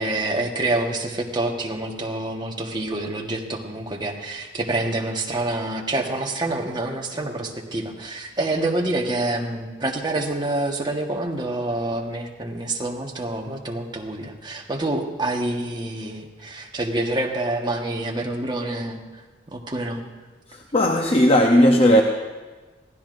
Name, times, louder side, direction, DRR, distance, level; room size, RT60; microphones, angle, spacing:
voice 1, 0.0-19.2 19.5-20.0, right 2 dB, 25° right, 0 dB, 1.3 m, -27 dB
voice 2, 20.5-22.0, equal, 35° left, 2 dB, 0.7 m, -16 dB
23.0 x 15.5 x 2.6 m, 1.3 s
head